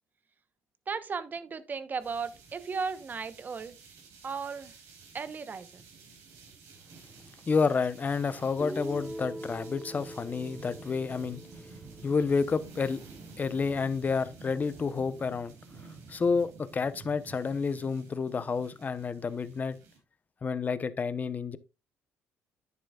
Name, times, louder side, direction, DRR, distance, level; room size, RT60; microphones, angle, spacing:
voice 1, 0.9-3.7 4.2-4.7 5.1-5.8, right 5 dB, 35° right, 1.0 m, -35 dB
sound 1, 2.0-20.0, right 4 dB, 80° right, 4.9 m, -51 dB
voice 2, 7.5-11.4 12.0-13.0 13.4-15.5 16.1-19.8 20.4-21.6, left 5 dB, 30° left, 0.9 m, -29 dB
Guitar, 8.6-12.6, right 1 dB, ahead, 0.4 m, -42 dB
10.0 x 9.8 x 2.4 m
cardioid pair, 95°, 5 cm